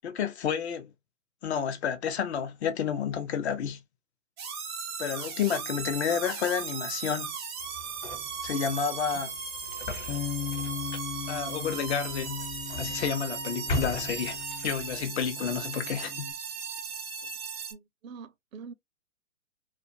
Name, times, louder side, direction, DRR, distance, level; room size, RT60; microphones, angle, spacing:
voice 1, 0.0-0.9 1.4-3.8 5.0-7.3 8.4-9.3 11.3-12.5 12.8-14.4 14.6-16.3, left 7 dB, 50° left, 0.7 m, -30 dB
sound 1, 4.4-17.7, right 6 dB, 20° right, 0.5 m, -37 dB
sound 2, 7.6-15.1, left 2 dB, 35° left, 1.1 m, -40 dB
Bass guitar, 10.1-16.3, left 7 dB, 85° left, 0.5 m, -39 dB
voice 2, 17.7-18.7, right 6 dB, 65° right, 0.6 m, -45 dB
2.5 x 2.4 x 2.7 m
hypercardioid pair, 130°, 44 cm